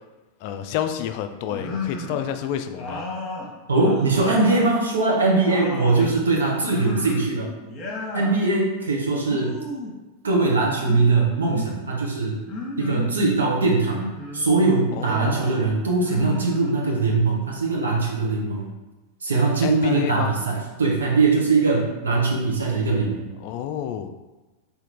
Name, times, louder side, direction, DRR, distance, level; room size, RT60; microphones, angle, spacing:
voice 1, 0.4-3.1 6.0-6.1 15.0-15.4 19.6-20.4 23.4-24.1, left 10 dB, 45° left, 8 dB, 0.3 m, -29 dB
sound 1, 1.5-2.3 2.8-4.7 5.1-6.1 6.7-7.3 7.6-8.4 9.2-10.0 10.8-11.7 12.5-13.2 13.8-14.5 15.0-15.6 16.0-17.1, left 3 dB, 30° left, 1.0 m, -33 dB
voice 2, 3.7-7.5 8.1-9.5 10.2-12.4 12.8-14.0 14.3-18.7 19.2-23.2, right 3 dB, 70° right, -2 dB, 0.9 m, -21 dB
4.3 x 2.8 x 3.7 m, 1.1 s
figure-of-eight pair, 90°, 0 cm